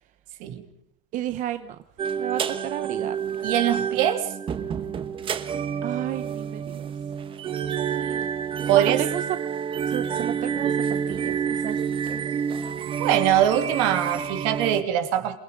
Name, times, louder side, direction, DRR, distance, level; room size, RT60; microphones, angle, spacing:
voice 1, 1.1-1.8 2.1-3.3 5.8-6.9 7.9-8.3 8.6-9.4 9.9-12.2 12.9-13.2, right 12 dB, 40° right, 0.9 m, -32 dB
sound 1, 2.0-14.8, right 7 dB, 25° right, 1.3 m, -28 dB
voice 2, 3.4-4.3 8.7-9.0 13.0-15.4, right 11 dB, 70° right, 2.9 m, -22 dB
27.5 x 19.5 x 5.3 m
supercardioid pair, 145°, 19 cm